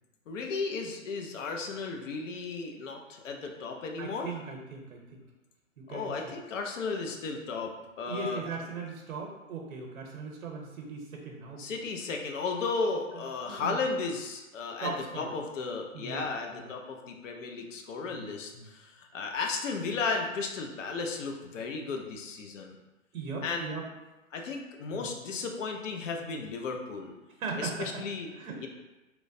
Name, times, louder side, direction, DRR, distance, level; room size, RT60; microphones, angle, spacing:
voice 1, 0.3-4.3 5.9-8.4 11.6-22.8 23.4-23.7 24.3-27.1 27.6-28.3 28.6-28.7, left 4 dB, 65° left, 3 dB, 0.6 m, -34 dB
voice 2, 4.0-5.2 5.8-6.3 8.0-11.8 13.1-13.8 14.8-15.3 15.9-16.3 16.5-16.7 18.1-18.7 23.1-23.9 24.9-25.1 27.4-28.0 28.3-28.7, right 4 dB, 90° right, 1 dB, 0.7 m, -39 dB
3.0 x 2.1 x 2.5 m, 1.1 s
hypercardioid pair, 145°, 41 cm